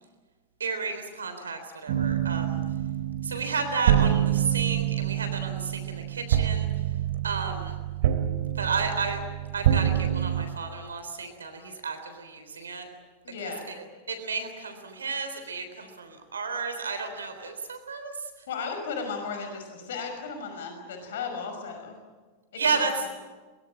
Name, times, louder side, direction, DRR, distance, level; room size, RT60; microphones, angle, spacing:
voice 1, 0.6-2.6 3.2-6.7 7.2-7.7 8.6-9.2 9.5-12.9 14.1-18.1 22.6-22.9, right 4 dB, 70° right, 7 dB, 3.6 m, -32 dB
sound 1, 1.9-10.4, right 11 dB, 55° right, 2.4 m, -26 dB
voice 2, 13.2-13.7 18.5-22.0 22.5-22.8, left 5 dB, 60° left, 5 dB, 5.7 m, -35 dB
23.5 x 22.5 x 8.8 m, 1.3 s
figure-of-eight pair, 90°, 0 cm